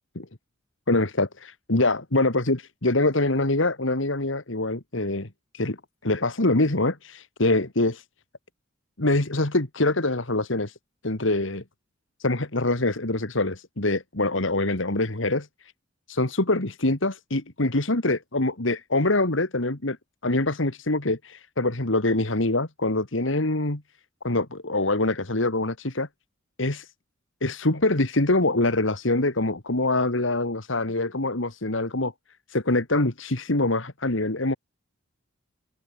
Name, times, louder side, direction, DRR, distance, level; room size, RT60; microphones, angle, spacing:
voice 1, 0.9-5.3 5.5-5.8 6.0-8.0 9.0-10.8 11.0-11.6 12.2-15.7 16.1-20.0 20.2-23.8 24.2-26.1 26.6-26.9 27.4-32.1 32.5-34.6, left 2 dB, 70° left, 2.4 m, -24 dB
open air
head